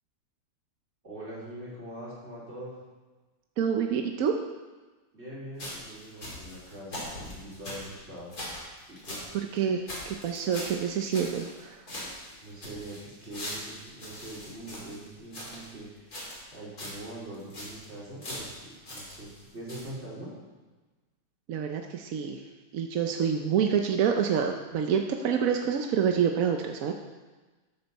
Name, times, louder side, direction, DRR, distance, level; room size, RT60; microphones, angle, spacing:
voice 1, 1.0-2.7 5.1-8.4 8.9-9.2 12.4-20.3, right 1 dB, 35° right, -7 dB, 3.5 m, -43 dB
voice 2, 3.6-4.4 9.5-11.8 21.5-22.4 22.7-26.9, right 7 dB, 65° right, 4 dB, 0.8 m, -27 dB
sound 1, 5.6-9.3 9.6-9.7 9.9-11.6 11.9-15.7 16.1-16.5 16.8-17.0 17.3-17.8 18.2-19.4 19.7-19.9, left 1 dB, 50° left, 3.8 m, -41 dB
13.5 x 8.0 x 4.1 m, 1.3 s
omnidirectional pair, 2.1 m